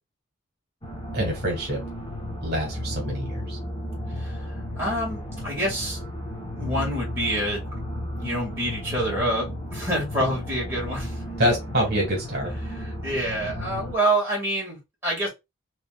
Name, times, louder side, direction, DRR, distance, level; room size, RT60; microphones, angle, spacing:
sound 1, 0.8-13.9, left 1 dB, 25° left, 0.9 m, -34 dB
voice 1, 1.1-1.8 2.4-3.6 11.4-12.5, equal, 50° right, 1.5 m, -25 dB
voice 2, 4.2-6.0 6.6-7.6 8.1-11.2 12.8-15.3, right 1 dB, 10° right, 1.9 m, -27 dB
4.1 x 3.1 x 2.3 m
head